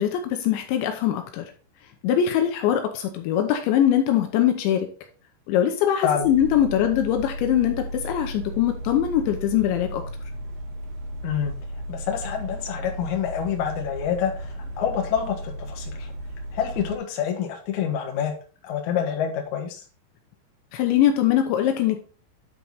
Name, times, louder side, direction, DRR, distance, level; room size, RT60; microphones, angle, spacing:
voice 1, 0.0-1.5 2.0-4.9 5.5-10.0 20.7-22.0, left 10 dB, 80° left, 5 dB, 3.0 m, -22 dB
sound 1, 6.2-17.0, equal, 65° right, 2.2 m, -35 dB
voice 2, 11.2-11.5 11.9-16.1 16.5-18.3 18.6-19.8, left 8 dB, 60° left, 1 dB, 2.1 m, -27 dB
9.5 x 4.5 x 4.0 m, 0.37 s
omnidirectional pair, 5.5 m